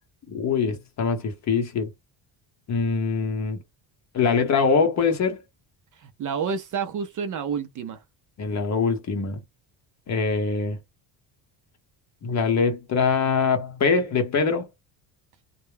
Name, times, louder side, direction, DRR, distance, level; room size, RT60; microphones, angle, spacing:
voice 1, 0.3-1.9 2.7-3.6 4.1-5.4 8.4-9.4 10.1-10.8 12.2-14.6, left 5 dB, 35° left, 0.8 m, -23 dB
voice 2, 5.9-8.0, right 6 dB, 45° right, 0.4 m, -29 dB
2.2 x 2.0 x 3.1 m
cardioid pair, 155°, 47 cm